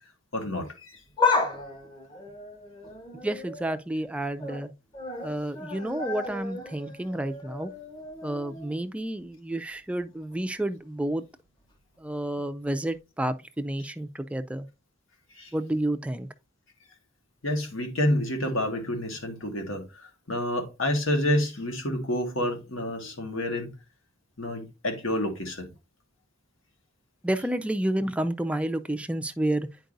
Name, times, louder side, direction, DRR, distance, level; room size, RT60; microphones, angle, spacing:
voice 1, 0.3-1.0 15.3-15.5 17.4-23.7 24.4-25.7, left 1 dB, 80° left, 1.7 m, -29 dB
sound 1, 1.0-3.8 4.2-4.6 4.9-8.9 9.2-9.3 10.3-10.4, left 3 dB, 25° left, 1.2 m, -32 dB
voice 2, 3.2-4.7 5.2-7.7 8.2-11.2 12.0-14.7 15.5-16.3 27.2-29.7, right 1 dB, 5° right, 0.4 m, -30 dB
9.1 x 4.6 x 2.6 m
head